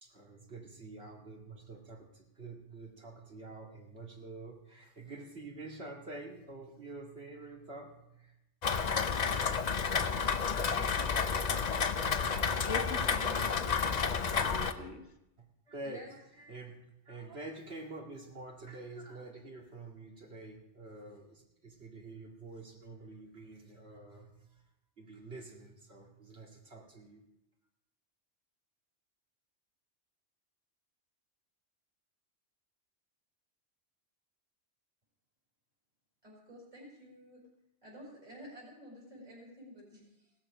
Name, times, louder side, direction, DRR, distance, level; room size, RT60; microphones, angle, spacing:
voice 1, 0.0-8.3 15.7-24.5 25.0-27.2, right 2 dB, 65° right, 2.5 m, -47 dB
Rain, 8.6-14.7, left 6 dB, 45° left, 0.8 m, -31 dB
voice 2, 12.6-15.1, left 4 dB, 80° left, 1.6 m, -42 dB
voice 3, 36.2-37.4 37.8-40.3, equal, 40° right, 5.5 m, -52 dB
17.0 x 13.5 x 4.9 m
omnidirectional pair, 1.2 m